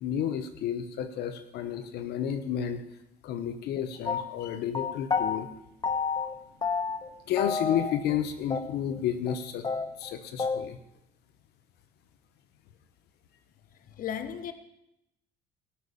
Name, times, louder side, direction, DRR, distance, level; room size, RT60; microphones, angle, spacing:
voice 1, 0.0-2.8 3.2-5.5 7.3-9.7 10.0-10.8, left 9 dB, 75° left, 9 dB, 1.2 m, -31 dB
sound 1, 4.1-5.4 5.8-6.3 6.6-7.1 7.4-8.2 8.5-8.6 8.9-9.0 9.3-9.4 9.6-10.6, left 5 dB, 25° left, 1.1 m, -30 dB
voice 2, 13.9-14.5, left 9 dB, 55° left, 10 dB, 1.2 m, -35 dB
17.5 x 6.2 x 8.4 m, 0.84 s
cardioid pair, 110°, 17 cm